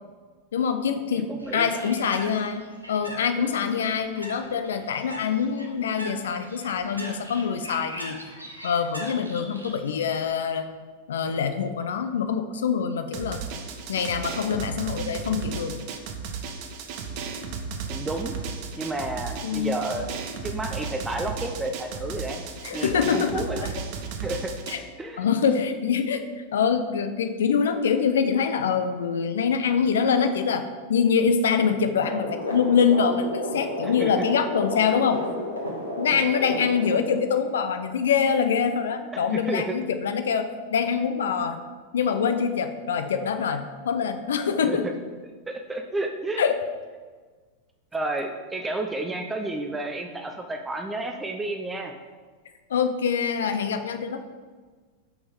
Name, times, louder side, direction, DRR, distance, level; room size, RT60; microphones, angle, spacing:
voice 1, 0.5-8.2 8.6-10.7 11.1-13.4 13.9-15.8 19.4-19.8 22.6-23.4 24.7-24.8 25.2-26.3 26.5-35.2 36.0-41.6 41.9-44.9 46.4-46.6 52.7-54.2, left 6 dB, 65° left, 8 dB, 0.5 m, -24 dB
voice 2, 1.1-1.8 17.9-18.3 18.8-20.2 20.4-22.4 22.7-23.7 24.2-24.6 25.0-25.2 33.8-34.3 39.1-39.8 44.6-44.9 45.5-46.4 47.9-52.0, right 2 dB, 10° right, 4 dB, 0.6 m, -31 dB
Bird, 1.4-10.2, right 1 dB, 85° right, 1.2 m, -42 dB
Drum, 13.1-24.8, right 5 dB, 45° right, 0.9 m, -34 dB
sound 1, 31.9-37.0, left 1 dB, 85° left, 1.8 m, -32 dB
6.3 x 5.9 x 5.2 m, 1.4 s
figure-of-eight pair, 90°, 0 cm